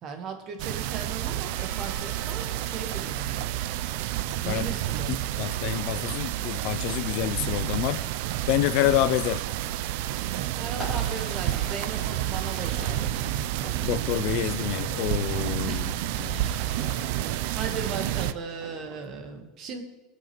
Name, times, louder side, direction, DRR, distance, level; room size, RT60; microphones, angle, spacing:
voice 1, 0.0-3.7 4.4-5.3 10.6-13.5 15.7-15.9 17.5-19.8, right 5 dB, 30° right, 1.2 m, -37 dB
sound 1, 0.6-18.3, right 13 dB, 55° right, 0.4 m, -30 dB
Percussion / Church bell, 1.6-6.0, equal, 20° left, 1.8 m, -52 dB
voice 2, 5.4-8.0 8.5-9.4 13.8-15.9 16.2-16.5, left 14 dB, 45° left, 0.3 m, -27 dB
Fireworks, 10.7-19.1, equal, 10° right, 3.2 m, -44 dB
22.0 x 7.9 x 3.0 m
supercardioid pair, 180°, 0 cm